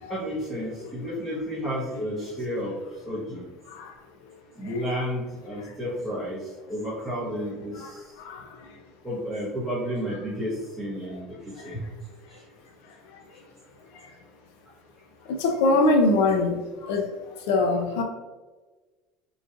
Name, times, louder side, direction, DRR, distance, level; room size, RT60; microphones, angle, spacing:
voice 1, 0.1-2.7 3.1-3.4 4.6-6.4 6.7-8.0 9.0-11.3 11.6-11.8, equal, 5° right, -10 dB, 1.3 m, -31 dB
voice 2, 15.4-16.5 16.9-17.0 17.5-18.0, left 2 dB, 90° left, 3 dB, 0.6 m, -21 dB
6.2 x 3.1 x 2.5 m, 1.3 s
cardioid pair, 125°, 0 cm